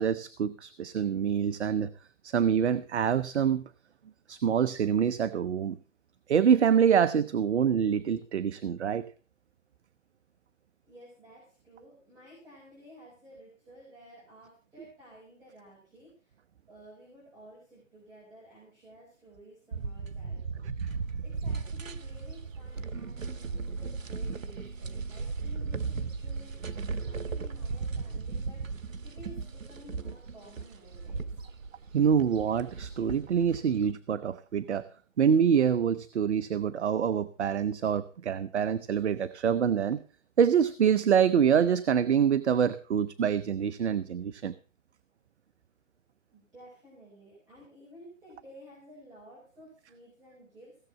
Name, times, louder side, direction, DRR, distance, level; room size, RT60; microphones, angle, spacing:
voice 1, 0.0-1.9 2.2-3.7 4.3-5.8 6.3-9.1 20.8-20.9 31.9-34.8 35.2-40.0 40.4-44.5, right 7 dB, 60° right, 14 dB, 0.8 m, -26 dB
voice 2, 10.9-16.4 16.7-31.4 46.3-50.8, equal, 10° right, -7 dB, 4.6 m, -53 dB
sound 1, 19.7-33.9, right 4 dB, 90° right, 1.1 m, -36 dB
16.5 x 7.4 x 5.6 m, 0.40 s
hypercardioid pair, 155°, 38 cm